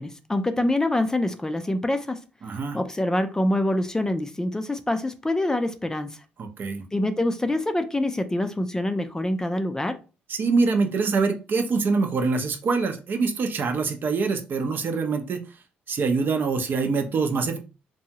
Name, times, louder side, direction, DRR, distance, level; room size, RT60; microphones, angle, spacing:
voice 1, 0.0-2.2 2.7-6.2 6.9-10.0, left 1 dB, 15° left, 0.4 m, -25 dB
voice 2, 2.4-2.8 6.4-6.8 10.3-15.4 15.9-17.6, right 4 dB, 50° right, 0.6 m, -24 dB
2.7 x 2.2 x 2.8 m
supercardioid pair, 65°, 4 cm